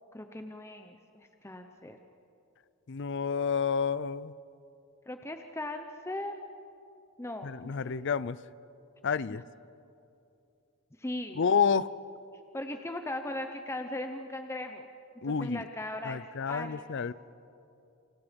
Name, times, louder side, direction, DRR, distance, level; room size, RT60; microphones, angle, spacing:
voice 1, 0.1-2.0 5.1-6.4 7.2-7.5 7.8-7.9 9.3-9.4 11.0-11.4 12.5-14.9 15.4-16.2 16.5-16.8, left 1 dB, 10° left, 6 dB, 0.8 m, -38 dB
voice 2, 2.9-4.3 7.4-8.4 9.0-9.4 11.4-11.9 15.2-15.7 16.0-17.1, left 6 dB, 55° left, 18 dB, 0.5 m, -29 dB
28.5 x 26.5 x 5.3 m, 2.7 s
head